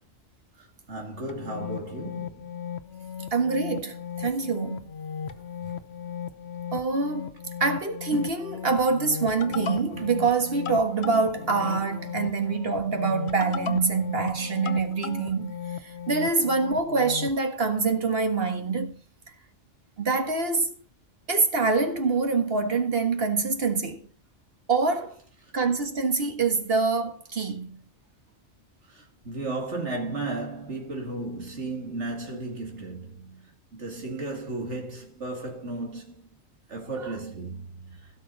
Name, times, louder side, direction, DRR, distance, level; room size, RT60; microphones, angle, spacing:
voice 1, 0.6-2.5 28.9-36.3 36.7-38.2, right 2 dB, 75° right, 2.5 m, -35 dB
sound 1, 1.3-17.4, left 8 dB, 65° left, 1.1 m, -36 dB
voice 2, 3.3-4.9 6.7-7.3 7.6-18.9 20.0-20.8 21.3-24.1 24.7-25.2 25.5-27.8 32.3-32.4, right 4 dB, 55° right, 1.8 m, -25 dB
16.5 x 6.7 x 4.0 m
omnidirectional pair, 1.2 m